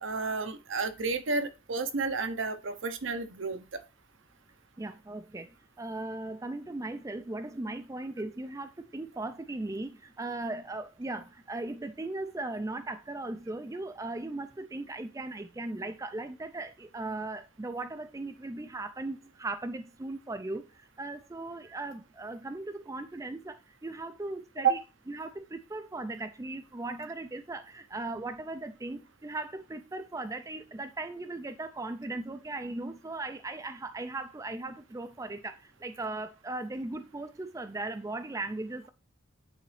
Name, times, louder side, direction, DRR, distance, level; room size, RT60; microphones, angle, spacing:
voice 1, 0.0-3.8 24.6-24.8, right 5 dB, 65° right, 0.8 m, -31 dB
voice 2, 4.8-24.8 25.1-38.9, right 2 dB, 15° right, 0.4 m, -38 dB
9.0 x 3.9 x 3.2 m
head